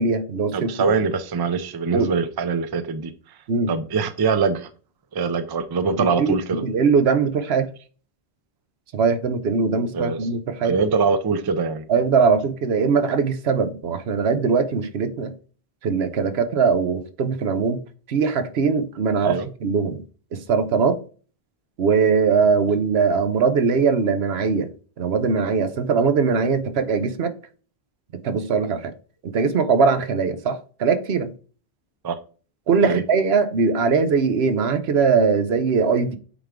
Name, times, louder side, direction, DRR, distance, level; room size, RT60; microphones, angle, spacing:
voice 1, 0.0-0.7 1.9-2.1 3.5-3.7 6.0-7.7 8.9-10.7 11.9-15.3 15.8-17.8 18.1-20.0 20.3-21.0 21.8-24.7 25.0-27.3 28.1-28.9 29.2-31.3 32.7-36.2, right 5 dB, 80° right, 1.0 m, -21 dB
voice 2, 0.5-3.1 3.7-4.7 5.1-6.6 9.9-10.2 10.6-11.8 19.2-19.5 32.0-32.2 32.8-33.0, right 5 dB, 30° right, 0.4 m, -23 dB
8.3 x 3.6 x 3.5 m
omnidirectional pair, 1.1 m